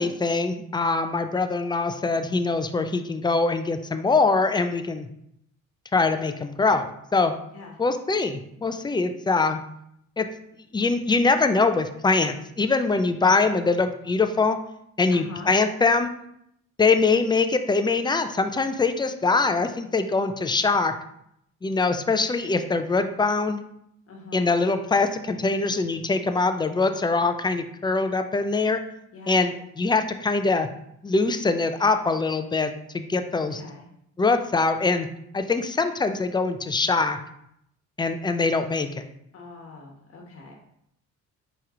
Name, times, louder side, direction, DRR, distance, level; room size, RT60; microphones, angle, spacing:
voice 1, 0.0-5.1 5.9-7.3 7.8-9.6 10.2-10.3 10.7-14.6 15.0-16.1 16.8-20.9 21.6-23.6 24.3-28.8 29.3-30.7 31.0-33.6 34.2-35.1 35.3-37.2 38.0-39.0, left 3 dB, 15° left, 8 dB, 0.4 m, -23 dB
voice 2, 15.1-15.5 24.1-24.5 29.1-29.5 33.3-33.8 39.3-40.5, left 3 dB, 50° left, 1 dB, 1.3 m, -43 dB
4.5 x 3.0 x 3.7 m, 0.75 s
cardioid pair, 90°, 30 cm